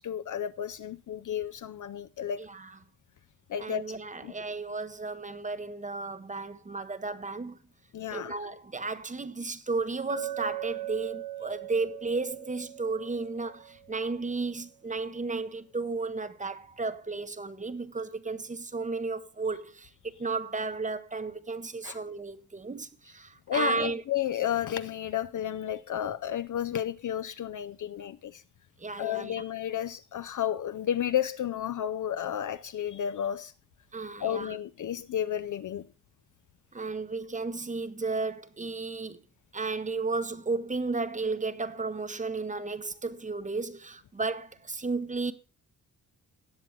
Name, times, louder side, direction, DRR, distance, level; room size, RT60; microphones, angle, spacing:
voice 1, 0.0-2.5 3.5-4.3 7.9-8.3 21.8-22.0 23.5-28.4 29.0-33.5 34.2-35.9, left 10 dB, 55° left, 0.5 m, -32 dB
voice 2, 2.4-2.8 3.6-7.6 8.1-24.0 28.8-29.4 33.9-34.5 36.7-39.2 39.5-45.3, right 3 dB, 20° right, 0.8 m, -33 dB
Chink clink, 10.1-14.1, right 13 dB, 70° right, 1.6 m, -39 dB
18.5 x 7.6 x 3.1 m
wide cardioid pair, 155°, 38 cm